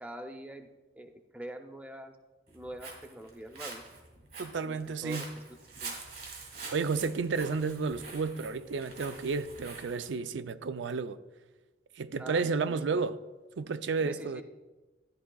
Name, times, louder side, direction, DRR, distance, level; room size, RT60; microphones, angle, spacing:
voice 1, 0.0-0.7 1.0-2.1 2.5-3.8 4.6-4.7 5.0-5.3 5.8-5.9 12.2-13.0 14.0-14.4, right 1 dB, 10° right, 0.6 m, -44 dB
Walk footsteps, 2.5-10.1, right 4 dB, 60° right, 2.1 m, -46 dB
voice 2, 4.4-5.3 6.7-11.2 12.0-13.2 13.6-14.4, right 4 dB, 85° right, 0.4 m, -32 dB
13.0 x 11.0 x 2.3 m
head